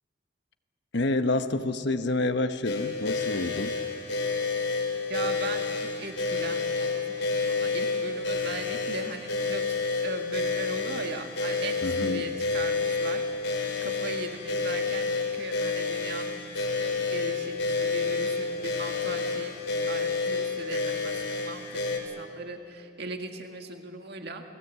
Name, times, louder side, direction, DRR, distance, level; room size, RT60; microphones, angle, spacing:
voice 1, 0.9-3.7 11.8-12.3, left 2 dB, 65° left, 8 dB, 1.1 m, -28 dB
sound 1, 2.6-22.0, left 4 dB, 85° left, 4.6 m, -29 dB
voice 2, 5.1-9.6 10.0-19.6 19.9-24.4, right 3 dB, 60° right, 4 dB, 1.9 m, -39 dB
29.0 x 20.5 x 8.3 m, 2.7 s
head